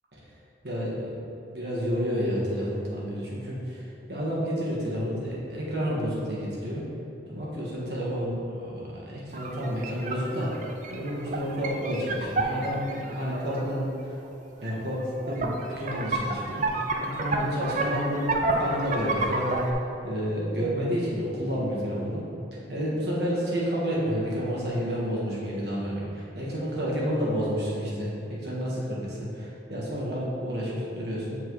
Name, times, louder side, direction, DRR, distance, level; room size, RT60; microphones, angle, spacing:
voice 1, 0.6-1.1 1.4-3.8 4.1-6.8 7.3-10.5 10.9-13.9 14.6-16.6 17.0-19.6 20.0-22.2 22.7-31.4, equal, 65° right, -5 dB, 1.5 m, -30 dB
sound 1, 9.3-13.6 14.6-14.7 15.0-19.7, right 2 dB, 40° right, 0.4 m, -30 dB
7.2 x 4.4 x 3.2 m, 2.7 s
head